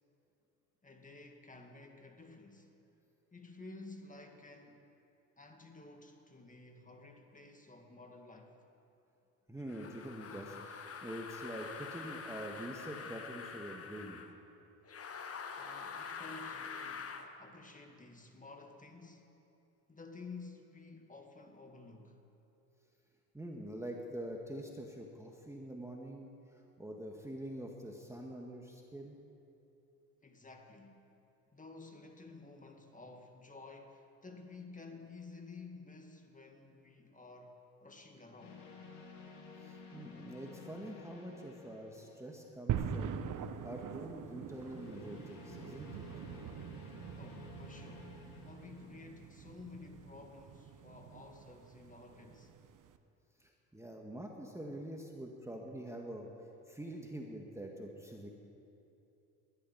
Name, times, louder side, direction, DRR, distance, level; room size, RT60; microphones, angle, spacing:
voice 1, 0.8-2.7 3.3-4.8 5.4-8.6 15.6-17.1 17.4-19.4 19.9-22.2 30.2-31.0 31.5-38.7 47.2-48.2 48.4-52.6, left 3 dB, 20° left, 2.1 m, -52 dB
voice 2, 9.5-14.2 23.3-29.2 39.6-46.0 53.4-56.3 56.7-58.3, right 1 dB, 5° right, 1.8 m, -45 dB
sound 1, 9.7-14.3 14.9-17.3, left 5 dB, 35° left, 1.4 m, -45 dB
sound 2, 38.4-42.8 44.4-49.2, left 4 dB, 85° left, 3.2 m, -53 dB
sound 3, 42.7-53.0, right 8 dB, 45° right, 1.1 m, -43 dB
19.5 x 12.5 x 5.8 m
supercardioid pair, 80°, 43 cm